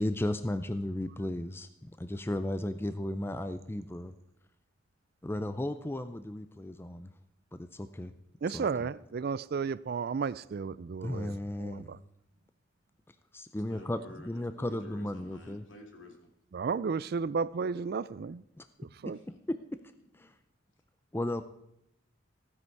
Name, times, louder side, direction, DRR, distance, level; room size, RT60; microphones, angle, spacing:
voice 1, 0.0-4.1 5.2-7.1 7.5-8.1 8.5-8.9 11.0-11.9 13.3-15.6 18.6-18.7 19.5-19.6 20.1-20.3 21.1-21.4, left 1 dB, 10° left, 10 dB, 0.5 m, -35 dB
voice 2, 8.4-12.0 16.5-18.4 18.8-19.2, right 5 dB, 50° right, 18 dB, 0.4 m, -33 dB
voice 3, 13.7-16.3 19.1-19.4, equal, 75° left, 3 dB, 2.4 m, -51 dB
15.0 x 9.7 x 4.7 m, 0.82 s
head